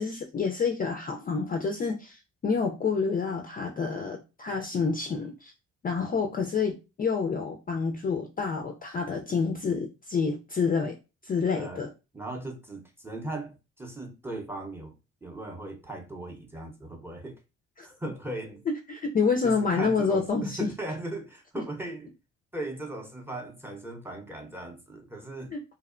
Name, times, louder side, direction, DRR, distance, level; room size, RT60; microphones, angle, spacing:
voice 1, 0.0-5.5 5.8-11.0 11.2-11.9 17.8-17.9 18.7-20.7 25.5-25.6, left 5 dB, 30° left, 0.4 m, -28 dB
voice 2, 12.1-14.9 15.2-17.4 17.8-18.6 19.4-22.1 22.5-25.6, right 2 dB, 10° right, 0.6 m, -38 dB
2.8 x 2.0 x 2.4 m
cardioid pair, 90°, 30 cm